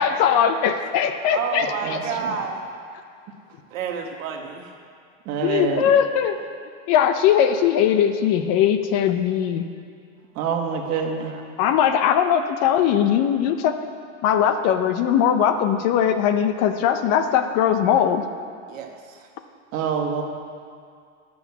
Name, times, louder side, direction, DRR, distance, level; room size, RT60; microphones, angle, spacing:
voice 1, 0.0-2.0 5.4-6.4 6.9-9.7 11.6-13.8 14.2-18.2, left 9 dB, 40° left, 8 dB, 0.7 m, -20 dB
voice 2, 1.3-2.7 3.7-4.7 11.2-11.4 18.7-19.3, right 6 dB, 90° right, 3 dB, 1.5 m, -30 dB
voice 3, 5.3-5.8 10.4-11.3 19.7-20.2, right 6 dB, 40° right, 1 dB, 1.6 m, -25 dB
11.5 x 6.2 x 7.1 m, 2.2 s
supercardioid pair, 140°, 38 cm